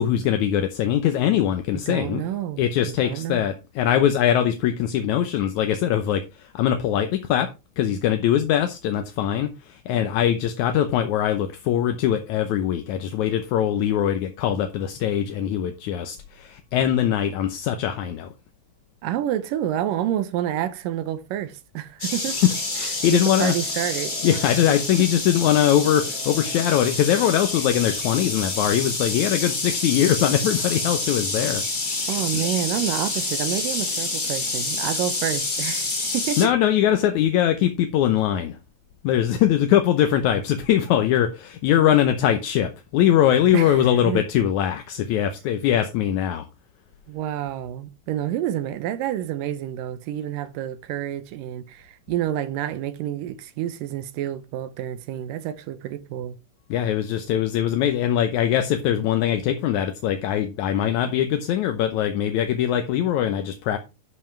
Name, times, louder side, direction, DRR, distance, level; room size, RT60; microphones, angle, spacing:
voice 1, 0.0-2.2 2.6-7.5 7.8-18.3 22.8-23.5 24.2-31.6 31.9-32.5 36.4-38.6 39.0-46.5 56.7-63.8, left 10 dB, 70° left, 2.0 m, -22 dB
voice 2, 1.7-3.5 19.0-22.4 22.8-24.4 32.1-36.5 43.5-44.2 47.1-56.4, right 11 dB, 80° right, 2.4 m, -29 dB
sound 1, 22.0-36.5, left 2 dB, 25° left, 1.1 m, -28 dB
11.0 x 5.5 x 4.4 m
omnidirectional pair, 4.0 m